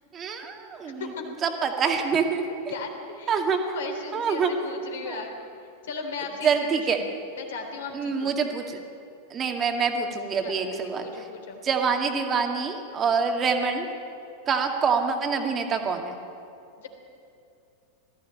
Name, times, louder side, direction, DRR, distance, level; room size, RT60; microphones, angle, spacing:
voice 1, 0.1-1.1 1.4-2.4 3.3-3.8 4.1-4.5 5.0-5.2 6.4-7.0 7.9-8.8 9.3-11.2 11.6-13.9 14.5-16.2, right 5 dB, 25° right, 4 dB, 2.1 m, -26 dB
voice 2, 0.8-1.2 2.7-3.4 3.7-5.3 5.8-6.7 7.0-8.4 10.4-11.6 16.8-16.9, left 5 dB, 60° left, 3 dB, 3.5 m, -37 dB
19.5 x 15.0 x 8.9 m, 2.6 s
figure-of-eight pair, 90°, 0 cm